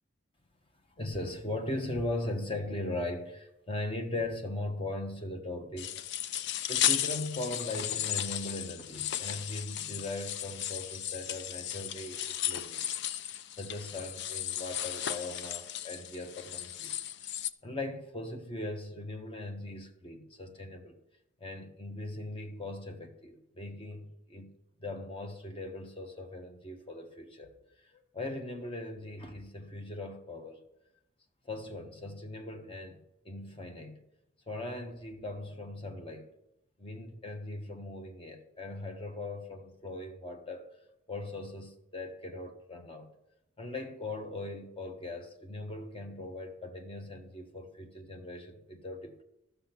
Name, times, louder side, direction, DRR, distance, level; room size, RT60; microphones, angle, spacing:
voice 1, 1.0-5.9 6.7-13.0 13.3-16.9 17.6-21.0 21.4-24.5 24.8-27.5 27.8-30.6 31.4-33.0 33.2-34.0 34.5-36.3 36.8-40.7 41.1-43.1 43.6-49.2, left 2 dB, 30° left, 1.3 m, -39 dB
sound 1, 5.8-17.5, left 11 dB, 60° left, 0.5 m, -35 dB
12.5 x 6.9 x 5.9 m
head